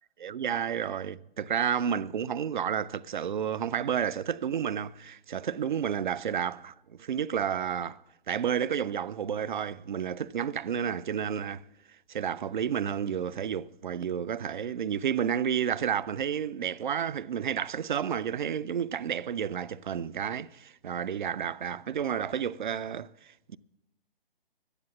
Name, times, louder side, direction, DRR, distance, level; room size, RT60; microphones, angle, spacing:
voice 1, 0.2-8.0 8.3-11.6 12.1-23.6, right 8 dB, 55° right, 0.4 m, -31 dB
12.0 x 10.0 x 7.0 m
figure-of-eight pair, 135°, 30 cm